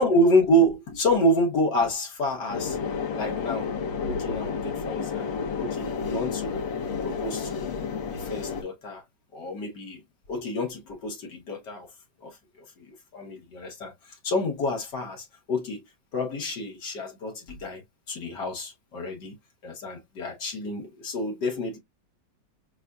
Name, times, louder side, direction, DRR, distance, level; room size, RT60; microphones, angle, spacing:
voice 1, 0.0-2.8 3.1-3.7 4.1-5.3 5.6-6.6 7.0-7.7 8.1-9.0 9.3-10.0 10.3-11.9 12.2-15.8 16.1-19.4 19.6-21.8, equal, 70° left, 1.8 m, -28 dB
sound 1, 2.5-8.6, left 6 dB, 85° left, 1.6 m, -31 dB
6.7 x 2.5 x 2.2 m
omnidirectional pair, 2.0 m